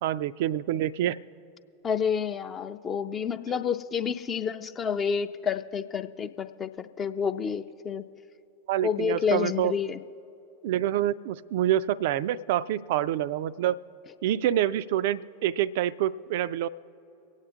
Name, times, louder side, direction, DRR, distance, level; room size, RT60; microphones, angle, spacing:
voice 1, 0.0-1.2 8.7-9.7 10.6-13.8 14.2-16.7, right 12 dB, 50° right, 17 dB, 0.3 m, -27 dB
voice 2, 1.8-8.0 8.8-10.0, left 7 dB, 25° left, 9 dB, 0.4 m, -29 dB
24.5 x 8.9 x 3.7 m, 2.9 s
figure-of-eight pair, 90°, 0 cm